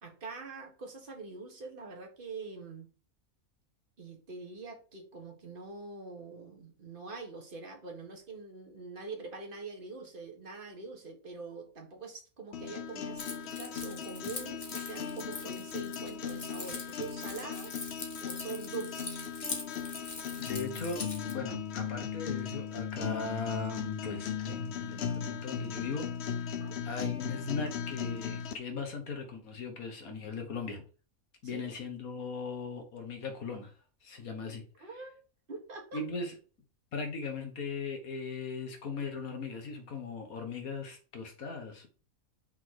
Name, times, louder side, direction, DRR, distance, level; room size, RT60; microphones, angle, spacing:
voice 1, 0.0-2.9 4.0-17.8 18.2-19.2 26.6-26.8 31.4-31.7 34.8-35.2 35.5-36.0, right 4 dB, 40° right, 1.8 m, -44 dB
sound 1, 12.5-28.5, left 7 dB, 55° left, 0.9 m, -38 dB
Keys jangling, 13.2-21.3, left 3 dB, 35° left, 1.3 m, -43 dB
voice 2, 20.4-26.1 26.8-30.8 31.4-33.7 34.0-34.9 35.9-36.3 36.9-41.9, left 4 dB, 85° left, 1.9 m, -38 dB
5.7 x 4.1 x 4.7 m
omnidirectional pair, 1.5 m